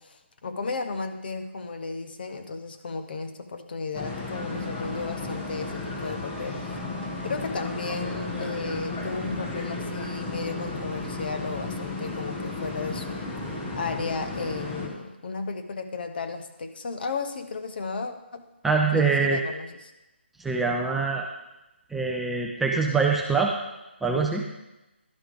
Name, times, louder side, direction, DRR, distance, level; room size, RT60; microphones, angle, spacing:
voice 1, 0.0-6.8 7.2-18.4 18.9-19.9, left 4 dB, 55° left, 7 dB, 0.9 m, -34 dB
sound 1, 3.9-14.9, left 2 dB, 20° left, 1.2 m, -34 dB
voice 2, 18.6-19.4 20.4-21.3 21.9-23.5 24.0-24.4, right 4 dB, 5° right, -1 dB, 0.4 m, -24 dB
11.5 x 4.8 x 5.1 m, 0.98 s
figure-of-eight pair, 155°, 6 cm